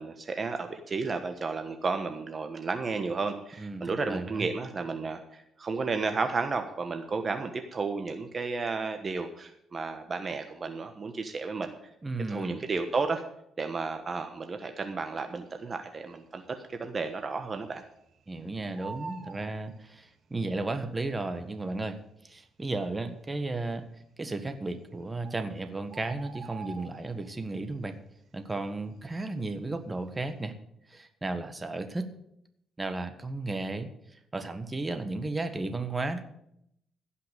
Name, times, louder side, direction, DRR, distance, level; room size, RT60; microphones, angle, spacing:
voice 1, 0.0-11.7 12.3-13.2 13.6-17.8, right 4 dB, 35° right, 6 dB, 1.2 m, -32 dB
voice 2, 3.6-4.5 12.0-12.7 18.3-22.0 22.2-23.9 24.2-28.0 28.3-30.5 30.9-32.1 32.8-33.9 34.3-36.2, right 2 dB, 20° right, 8 dB, 1.4 m, -34 dB
Bird, 15.8-16.4 16.8-16.9 17.1-18.3 18.6-20.4 21.3-21.4 22.0-22.1 22.3-22.4 23.0-23.5 24.5-24.6 24.9-25.0 25.2-27.5 27.9-28.2 28.5-29.9 30.2-30.5, right 5 dB, 55° right, 1.8 m, -46 dB
16.0 x 5.8 x 8.3 m, 0.76 s
cardioid pair, 90°, 0 cm